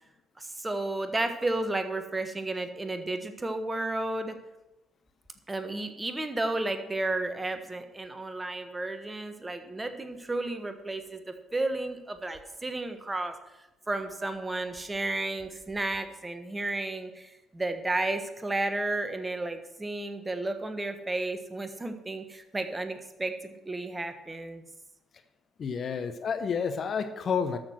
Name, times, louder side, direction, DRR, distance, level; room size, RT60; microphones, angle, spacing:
voice 1, 0.4-4.3 5.5-11.2 11.5-13.3 13.9-24.6, right 2 dB, 20° right, 8 dB, 1.4 m, -32 dB
voice 2, 25.6-27.6, left 6 dB, 45° left, 9 dB, 0.9 m, -30 dB
13.0 x 6.4 x 6.2 m, 0.97 s
figure-of-eight pair, 50°, 0 cm